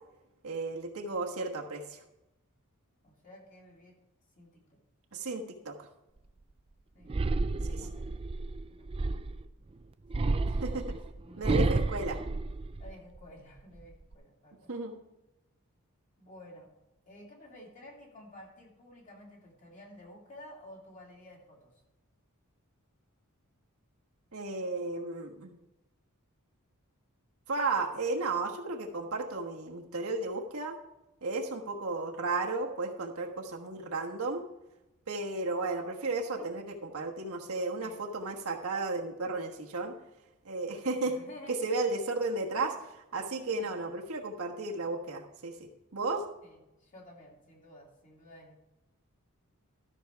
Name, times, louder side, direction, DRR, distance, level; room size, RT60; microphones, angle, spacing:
voice 1, 0.4-2.0 5.1-5.9 7.6-7.9 10.5-10.8 11.4-12.2 14.7-15.0 24.3-25.6 27.5-30.8 31.2-34.4 35.1-39.9 40.4-41.1 41.5-46.2, right 3 dB, 70° right, 1 dB, 1.3 m, -34 dB
voice 2, 3.0-4.0 4.4-4.8 6.9-8.1 8.7-9.0 10.1-11.8 12.8-14.7 16.2-16.7 17.1-21.7 36.4-36.5 37.8-38.0 41.0-41.6 43.5-43.7 46.4-48.6, left 1 dB, 35° left, -2 dB, 2.7 m, -53 dB
sound 1, 7.1-9.5 10.1-13.2 13.6-14.1, right 3 dB, 25° right, 0.4 m, -31 dB
13.0 x 6.2 x 4.6 m, 0.95 s
head